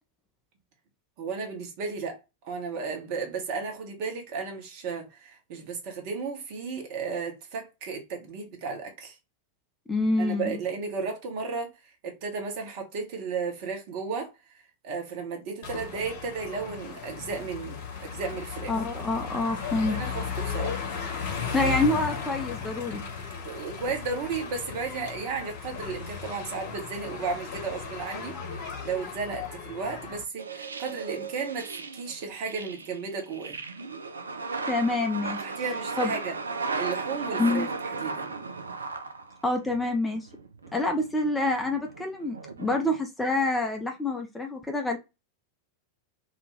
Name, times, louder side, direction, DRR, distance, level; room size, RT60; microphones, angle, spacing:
voice 1, 1.2-2.2 2.4-9.2 10.2-14.3 14.8-18.8 19.9-20.9 21.6-21.7 23.4-33.6 35.4-36.4 36.8-38.3, right 5 dB, 45° right, 0.9 m, -34 dB
voice 2, 9.9-10.6 18.7-20.0 21.5-23.0 34.7-35.4 36.0-36.1 37.4-37.7 39.4-40.3 40.7-45.0, left 2 dB, 10° left, 0.5 m, -27 dB
sound 1, 15.6-30.2, left 6 dB, 50° left, 0.8 m, -36 dB
sound 2, 30.4-39.9 40.3-43.0, right 4 dB, 75° right, 0.3 m, -36 dB
2.4 x 2.3 x 3.1 m
figure-of-eight pair, 90°, 0 cm